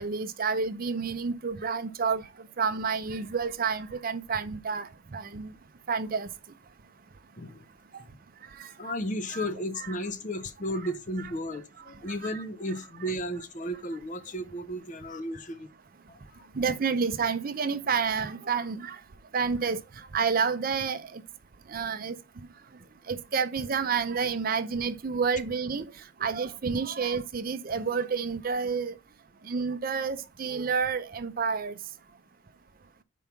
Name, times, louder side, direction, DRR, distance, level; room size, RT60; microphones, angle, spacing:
voice 1, 0.0-2.2 2.6-5.5 5.9-6.3 8.5-8.9 9.3-9.4 9.8-9.9 12.2-12.4 16.5-19.0 19.3-21.2 21.7-22.2 23.1-25.9 26.2-29.0 29.4-31.8, right 5 dB, 40° right, 0.5 m, -29 dB
voice 2, 8.8-15.7 16.1-16.5, equal, 35° left, 0.6 m, -34 dB
5.3 x 4.6 x 5.7 m
head